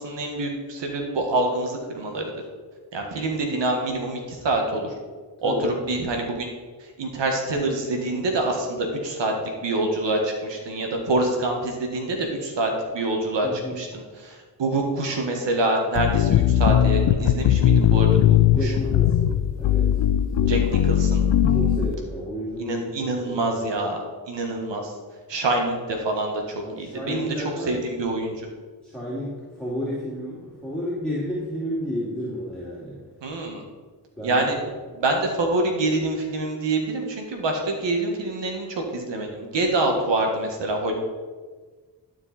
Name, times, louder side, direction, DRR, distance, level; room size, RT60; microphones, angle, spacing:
voice 1, 0.0-2.3 2.9-4.9 5.4-6.5 7.0-9.3 9.6-18.7 20.4-21.3 22.6-24.0 24.3-24.9 25.3-28.5 33.2-33.6 34.2-34.6 34.9-40.9, right 2 dB, 75° right, 2 dB, 1.7 m, -26 dB
voice 2, 13.4-13.8 18.5-19.9 20.4-20.7 21.5-23.5 26.6-27.8 28.8-33.0 34.2-34.7, equal, ahead, -7 dB, 2.6 m, -32 dB
sound 1, 16.0-21.9, left 10 dB, 75° left, 0.6 m, -19 dB
12.0 x 4.8 x 4.3 m, 1.4 s
cardioid pair, 45°, 43 cm